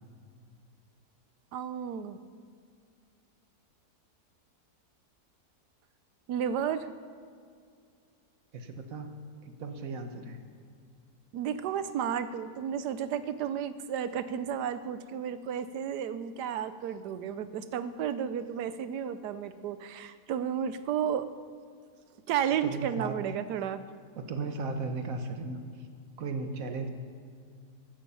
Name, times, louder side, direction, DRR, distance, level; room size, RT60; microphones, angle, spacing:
voice 1, 1.5-2.2 6.3-6.9 11.3-21.3 22.3-23.8, right 8 dB, 90° right, 13 dB, 1.3 m, -32 dB
voice 2, 8.5-9.1 9.4-10.4 22.4-23.1 24.1-25.9 26.2-26.9, right 3 dB, 60° right, 6 dB, 1.5 m, -36 dB
14.5 x 11.5 x 5.6 m, 2.2 s
omnidirectional pair, 1.7 m